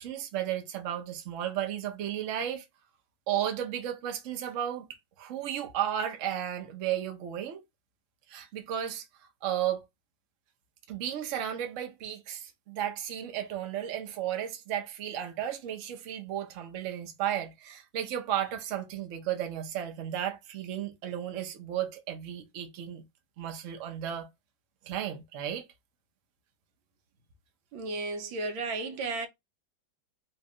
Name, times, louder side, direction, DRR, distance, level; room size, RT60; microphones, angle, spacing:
voice 1, 0.0-2.7 3.3-4.9 5.2-7.6 8.3-9.0 9.4-9.8 10.9-23.0 23.4-24.3 24.8-25.7, right 10 dB, 55° right, 0.9 m, -34 dB
voice 2, 27.7-29.3, right 3 dB, 85° right, 1.5 m, -33 dB
3.1 x 2.7 x 3.7 m
omnidirectional pair, 2.1 m